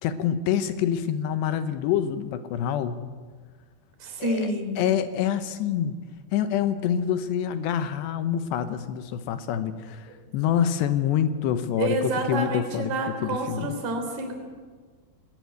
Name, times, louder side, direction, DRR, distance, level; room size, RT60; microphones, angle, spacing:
voice 1, 0.0-3.0 4.2-6.0 6.3-10.1 10.3-13.8, left 9 dB, 80° left, 10 dB, 3.0 m, -26 dB
voice 2, 4.0-4.8 11.8-14.3, right 2 dB, 45° right, 4 dB, 4.5 m, -28 dB
20.0 x 18.0 x 9.4 m, 1.5 s
omnidirectional pair, 5.0 m